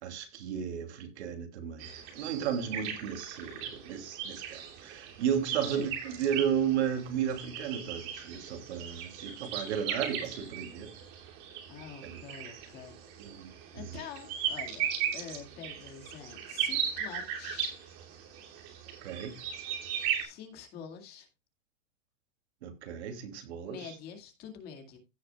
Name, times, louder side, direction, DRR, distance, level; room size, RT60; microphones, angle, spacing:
voice 1, 0.0-1.9 2.1-10.9 12.0-12.1 13.2-13.5 19.0-19.3 22.6-23.9, right 8 dB, 60° right, 2.8 m, -34 dB
sound 1, 1.8-20.2, right 8 dB, 30° right, 2.7 m, -38 dB
voice 2, 11.7-13.0 13.7-14.9 15.1-17.7 20.2-21.3 23.6-25.0, left 7 dB, 25° left, 2.1 m, -46 dB
16.5 x 6.5 x 2.3 m
supercardioid pair, 170°, 38 cm